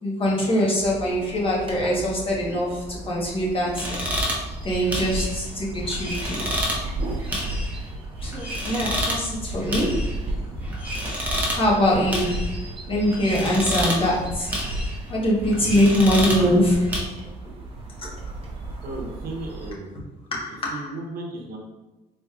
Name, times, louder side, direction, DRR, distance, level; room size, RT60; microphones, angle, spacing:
voice 1, 0.0-4.0 4.6-6.4 8.2-10.0 11.6-12.5 12.9-14.5 15.1-16.9 18.0-18.1 20.3-20.9, equal, 30° left, -4 dB, 1.2 m, -23 dB
sound 1, 0.7-19.7, right 2 dB, 30° right, 1.0 m, -37 dB
sound 2, 3.7-17.0, equal, 10° right, 0.9 m, -29 dB
voice 2, 18.8-19.9 20.7-21.6, right 2 dB, 65° right, 0 dB, 0.8 m, -34 dB
3.9 x 3.2 x 2.4 m, 1.1 s
cardioid pair, 110°, 17 cm